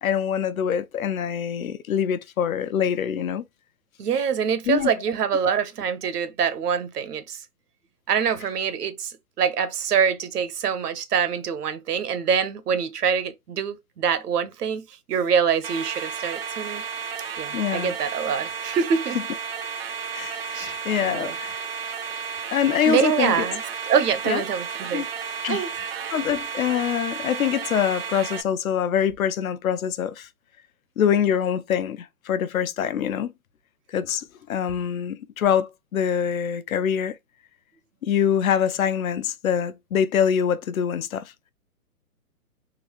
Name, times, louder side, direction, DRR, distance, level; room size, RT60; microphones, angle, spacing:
voice 1, 0.0-3.4 4.7-4.9 17.5-17.9 19.1-19.2 20.1-21.6 22.5-23.5 24.3-24.4 24.9-25.1 25.4-25.6 26.1-30.3 31.0-33.3 33.9-37.1 38.0-41.2, left 8 dB, 65° left, 0.6 m, -24 dB
voice 2, 4.0-7.4 8.1-16.8 17.4-19.2 20.5-20.7 21.0-21.3 22.8-25.1 25.5-25.7, right 7 dB, 80° right, 0.8 m, -25 dB
sound 1, 15.6-28.4, right 6 dB, 45° right, 0.4 m, -33 dB
3.9 x 2.5 x 2.9 m
hypercardioid pair, 155°, 46 cm